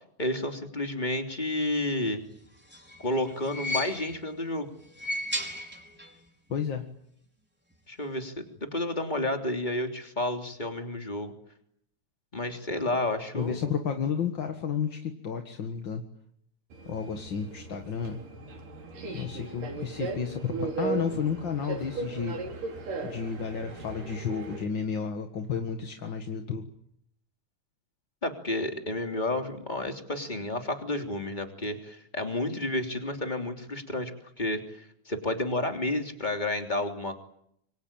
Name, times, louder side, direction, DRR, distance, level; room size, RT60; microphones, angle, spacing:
voice 1, 0.2-2.2 3.0-4.7 7.9-11.3 12.3-13.6 28.2-34.1 34.4-37.2, left 1 dB, 15° left, 4 dB, 3.0 m, -31 dB
sound 1, 2.4-4.3 4.8-6.2 6.5-6.6 7.7-7.8, left 1 dB, 5° right, 4.1 m, -35 dB
voice 2, 6.5-6.9 13.3-16.0 16.9-18.2 19.1-22.4 23.0-26.7, left 6 dB, 45° left, 5 dB, 2.0 m, -32 dB
Subway metro underground, 16.7-24.6, right 3 dB, 85° right, 5.1 m, -37 dB
27.0 x 24.5 x 8.8 m, 0.72 s
omnidirectional pair, 3.7 m